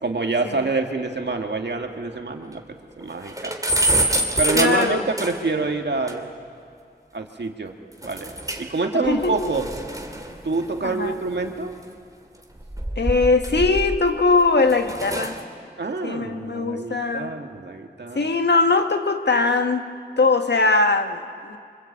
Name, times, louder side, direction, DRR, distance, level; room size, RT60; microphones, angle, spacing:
voice 1, 0.0-2.6 3.0-3.5 4.4-6.3 7.1-7.7 8.0-8.3 8.6-9.7 10.4-11.7 15.8-18.3, right 3 dB, 85° right, 4 dB, 1.9 m, -26 dB
sound 1, 1.3-1.4 1.7-1.8 2.1-2.2 2.6-2.7 3.0-5.6 6.1-6.2 8.0-8.8 9.1-11.7 12.5-14.1 14.6-15.4, right 1 dB, 20° right, 2.8 m, -26 dB
voice 2, 4.5-5.0 8.9-9.5 10.8-11.2 13.0-15.4 16.0-17.3 18.1-19.9 20.2-21.6, left 3 dB, 80° left, 6 dB, 1.5 m, -21 dB
25.5 x 25.5 x 8.7 m, 2.2 s
wide cardioid pair, 70°, 17 cm